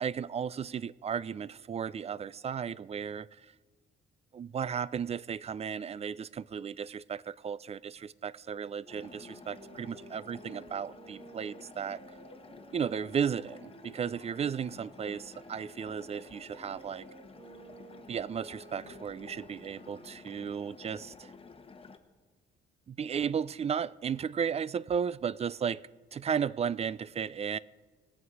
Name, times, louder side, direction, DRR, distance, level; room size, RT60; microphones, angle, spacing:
voice 1, 0.0-3.3 4.3-12.0 12.7-17.1 18.1-21.3 22.9-25.8 26.1-27.6, right 7 dB, 30° right, 0.4 m, -34 dB
sound 1, 8.7-14.4 15.1-20.4, right 4 dB, 55° right, 1.5 m, -54 dB
sound 2, 8.9-22.0, left 4 dB, 30° left, 1.0 m, -52 dB
20.5 x 8.0 x 4.8 m
cardioid pair, 90°, 20 cm